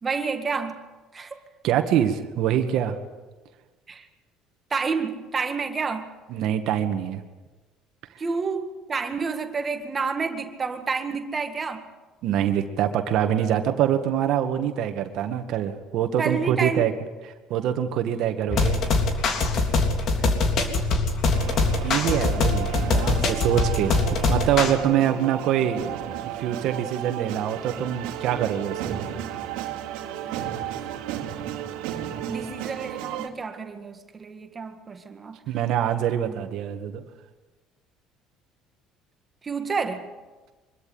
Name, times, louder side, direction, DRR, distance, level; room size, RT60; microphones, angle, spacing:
voice 1, 0.0-0.9 1.1-1.4 3.9-4.1 4.7-6.1 8.2-11.9 16.2-16.9 20.1-20.5 20.9-21.0 30.3-30.7 32.3-35.4 39.4-40.1, right 5 dB, 30° right, 6 dB, 1.9 m, -29 dB
voice 2, 1.6-2.9 6.3-7.2 12.2-16.9 17.5-18.8 21.8-24.0 24.3-25.8 26.4-29.1 35.5-37.0, right 10 dB, 65° right, 7 dB, 2.0 m, -24 dB
sound 1, 18.5-24.7, left 3 dB, 55° left, 3.4 m, -23 dB
sound 2, 21.3-33.3, right 10 dB, 85° right, 2.5 m, -33 dB
24.5 x 13.5 x 9.7 m, 1.3 s
supercardioid pair, 100°, 0 cm